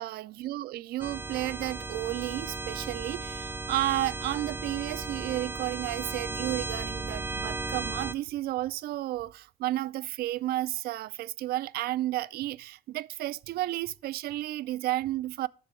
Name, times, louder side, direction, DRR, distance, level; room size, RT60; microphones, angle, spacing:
voice 1, 0.0-15.5, right 15 dB, 65° right, 0.4 m, -32 dB
sound 1, 1.0-8.1, right 3 dB, 10° right, 0.5 m, -35 dB
10.5 x 6.7 x 3.0 m
cardioid pair, 110°, 17 cm